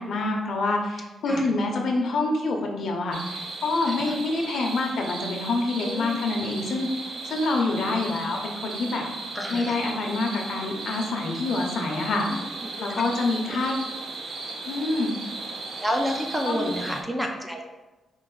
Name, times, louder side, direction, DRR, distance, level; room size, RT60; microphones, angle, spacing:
voice 1, 0.0-6.9 7.2-9.0 9.5-12.3 12.8-13.7 14.7-15.1 16.5-16.7, left 2 dB, 60° left, 1 dB, 0.7 m, -26 dB
sound 1, 3.1-17.0, right 3 dB, 50° right, 0.6 m, -36 dB
voice 2, 3.8-4.2 5.8-6.2 9.3-9.8 12.3-13.6 15.8-17.6, equal, 5° right, 2 dB, 0.4 m, -31 dB
4.6 x 2.5 x 3.8 m, 1.1 s
wide cardioid pair, 155°, 0 cm